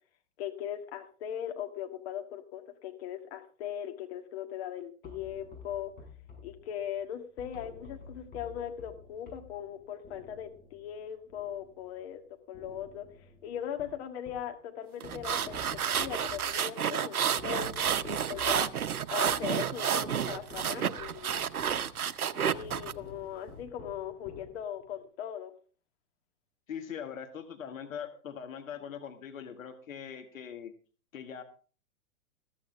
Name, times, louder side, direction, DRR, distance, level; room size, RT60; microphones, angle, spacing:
voice 1, 0.4-5.9 6.4-12.2 12.5-13.1 13.4-15.6 16.0-18.7 19.1-21.5 22.3-25.5, left 10 dB, 45° left, 6 dB, 1.9 m, -39 dB
sound 1, 5.0-12.2 12.5-14.6 15.0-24.9, left 3 dB, 20° left, 5.8 m, -51 dB
sound 2, 15.0-22.9, right 8 dB, 75° right, 0.8 m, -30 dB
voice 2, 26.7-30.7 31.1-31.4, left 8 dB, 60° left, 7 dB, 1.7 m, -41 dB
14.5 x 14.0 x 3.5 m, 0.38 s
figure-of-eight pair, 110°, 44 cm